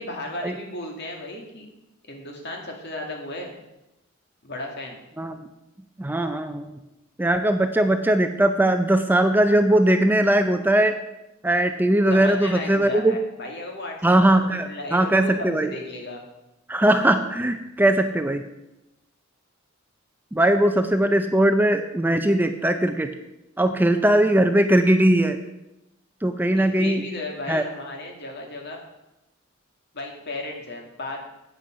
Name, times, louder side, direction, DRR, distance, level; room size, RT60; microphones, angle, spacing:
voice 1, 0.0-1.7 2.1-3.6 4.4-5.0 12.1-16.2 26.4-28.8 29.9-31.2, left 2 dB, 55° left, 1 dB, 2.2 m, -35 dB
voice 2, 6.0-6.8 7.2-10.9 11.4-13.1 14.0-15.7 16.7-18.4 20.3-23.1 23.6-25.4 26.2-27.0 27.5-27.6, right 1 dB, 10° right, 7 dB, 0.5 m, -20 dB
11.0 x 8.4 x 5.1 m, 0.93 s
head